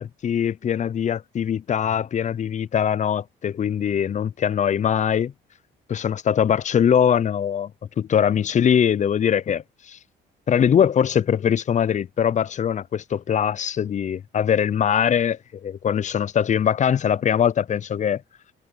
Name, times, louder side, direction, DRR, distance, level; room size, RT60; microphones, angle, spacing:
voice 1, 0.0-5.3 5.9-7.7 8.0-10.0 10.5-18.2, left 8 dB, 40° left, 0.4 m, -22 dB
cardioid pair, 90°, 20 cm